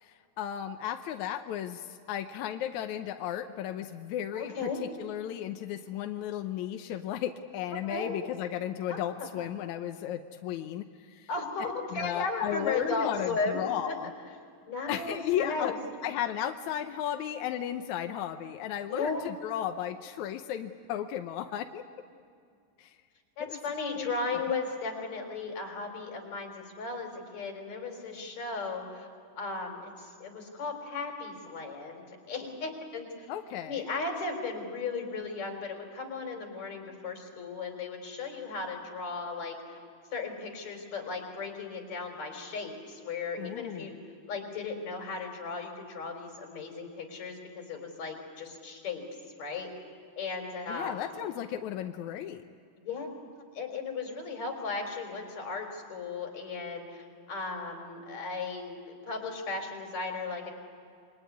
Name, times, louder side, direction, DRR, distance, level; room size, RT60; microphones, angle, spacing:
voice 1, 0.0-11.3 11.9-14.1 14.9-15.7 16.0-21.8 22.8-23.0 23.4-23.6 23.9-24.4 33.3-33.9 43.4-43.9 50.7-52.4, left 10 dB, 75° left, 6 dB, 1.8 m, -35 dB
voice 2, 4.3-4.8 7.9-8.2 8.9-9.0 9.4-9.5 11.3-14.0 14.7-15.8 18.9-19.2 23.4-29.1 29.3-29.9 30.2-33.1 33.6-39.5 40.1-44.0 44.3-49.1 49.4-49.7 50.2-51.1 52.8-53.1 53.6-56.9 57.3-58.8 59.1-60.5, left 4 dB, 50° left, 3 dB, 5.2 m, -36 dB
27.5 x 23.0 x 9.6 m, 2.4 s
omnidirectional pair, 4.2 m